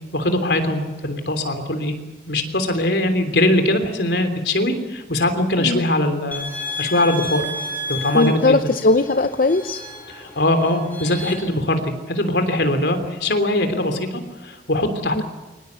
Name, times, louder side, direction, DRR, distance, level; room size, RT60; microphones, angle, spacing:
voice 1, 0.1-1.9 2.3-6.5 6.8-7.4 7.9-8.7 10.1-15.2, left 1 dB, 75° left, 7 dB, 3.3 m, -21 dB
voice 2, 5.6-5.9 8.1-9.8 15.2-15.3, left 2 dB, 50° left, 9 dB, 0.7 m, -19 dB
sound 1, 6.3-11.3, left 1 dB, 10° left, 5.0 m, -32 dB
23.5 x 19.5 x 8.2 m, 1.2 s
head